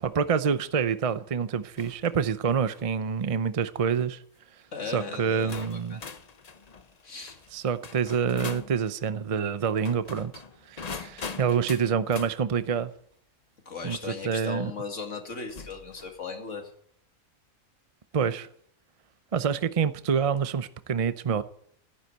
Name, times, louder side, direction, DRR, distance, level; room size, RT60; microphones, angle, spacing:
voice 1, 0.0-4.2 4.9-6.0 7.5-10.3 10.7-12.9 13.8-14.7 18.1-18.5 19.3-21.4, right 6 dB, 40° right, 0.5 m, -27 dB
sound 1, 1.8-2.1 2.6-2.9 3.7-4.0 4.9-5.0 5.5-8.7 9.7-12.3 14.1-14.2 15.5-16.2, left 5 dB, 35° left, 0.7 m, -42 dB
voice 2, 4.7-6.0 7.0-7.4 13.7-16.7, left 5 dB, 65° left, 2.5 m, -37 dB
14.5 x 9.8 x 7.9 m
omnidirectional pair, 1.4 m